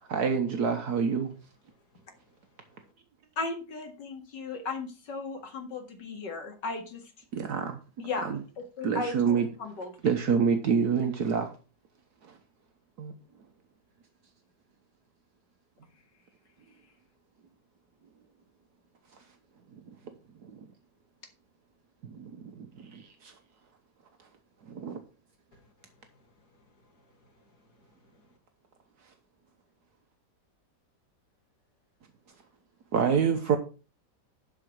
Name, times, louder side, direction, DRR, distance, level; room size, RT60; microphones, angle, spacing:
voice 1, 0.1-1.3 7.3-7.8 8.2-8.4 8.8-9.5 10.0-11.5 12.2-12.4 13.0-13.1 19.9-20.0 20.4-20.6 22.0-23.3 24.7-25.0 32.9-33.6, right 6 dB, 70° right, 1.5 m, -27 dB
voice 2, 1.7-2.9 25.5-28.4, left 2 dB, 65° left, 2.3 m, -66 dB
voice 3, 3.4-7.0 8.0-9.9 10.3-10.4, left 3 dB, 90° left, 2.5 m, -36 dB
12.0 x 4.8 x 6.1 m
omnidirectional pair, 1.8 m